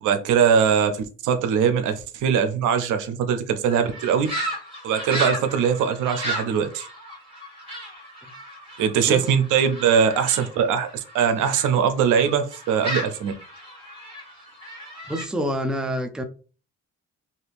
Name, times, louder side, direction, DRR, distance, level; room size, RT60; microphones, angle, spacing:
voice 1, 0.0-4.3 4.8-6.9 8.8-10.9 11.1-13.3, right 7 dB, 80° right, 0.6 m, -21 dB
sound 1, 3.6-11.7 12.1-15.2, equal, 20° right, 1.8 m, -34 dB
voice 2, 15.1-16.2, equal, 5° right, 0.5 m, -27 dB
2.8 x 2.5 x 3.4 m
cardioid pair, 90°, 30 cm